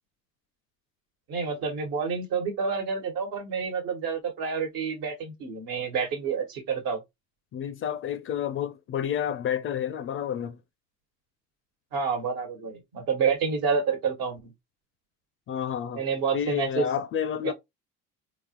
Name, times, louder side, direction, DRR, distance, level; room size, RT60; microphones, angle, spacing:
voice 1, 1.3-7.0 11.9-14.5 15.9-16.9 17.4-17.5, right 5 dB, 70° right, 1.3 m, -28 dB
voice 2, 7.5-10.6 15.5-16.0 16.3-17.5, left 9 dB, 35° left, 0.4 m, -30 dB
3.9 x 2.1 x 2.9 m
supercardioid pair, 85°, 36 cm